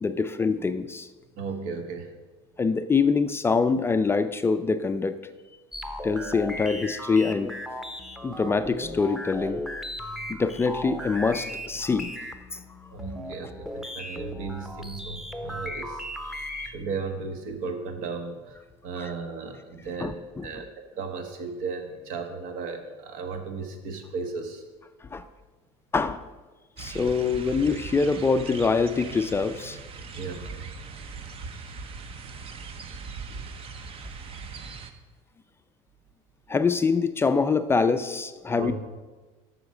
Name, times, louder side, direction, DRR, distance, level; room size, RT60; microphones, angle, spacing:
voice 1, 0.0-1.1 2.6-5.2 6.0-7.5 8.2-9.6 10.3-12.1 12.5-12.6 16.3-16.8 19.0-19.1 20.0-20.5 25.0-25.2 25.9-26.2 26.8-29.8 36.5-38.7, left 4 dB, 15° left, 10 dB, 0.4 m, -25 dB
voice 2, 1.4-2.1 12.9-16.3 16.6-20.7 21.0-24.6 30.1-30.5 33.3-33.4 38.6-38.7, right 4 dB, 70° right, 6 dB, 1.4 m, -35 dB
sound 1, 5.7-16.9, equal, 5° right, 0.8 m, -37 dB
sound 2, 26.8-34.9, right 4 dB, 45° right, 0.8 m, -40 dB
7.9 x 6.3 x 6.0 m, 1.3 s
supercardioid pair, 110°, 14 cm